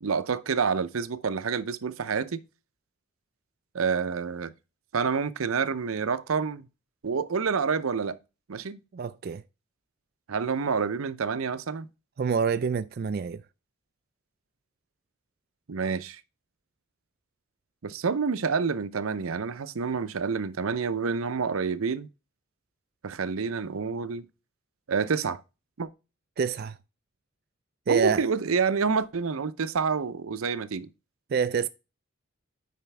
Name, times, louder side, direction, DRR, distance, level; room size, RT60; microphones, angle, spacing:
voice 1, 0.0-2.4 3.7-4.5 4.9-6.7 7.0-8.2 8.5-8.8 10.3-11.9 15.7-16.2 17.8-22.1 23.0-24.3 24.9-25.4 25.8-25.9 27.9-30.9, right 5 dB, 90° right, 0.6 m, -28 dB
voice 2, 8.9-9.4 12.2-13.4 26.4-26.8 27.9-28.2 31.3-31.7, right 6 dB, 45° right, 0.3 m, -27 dB
9.1 x 5.1 x 3.3 m
head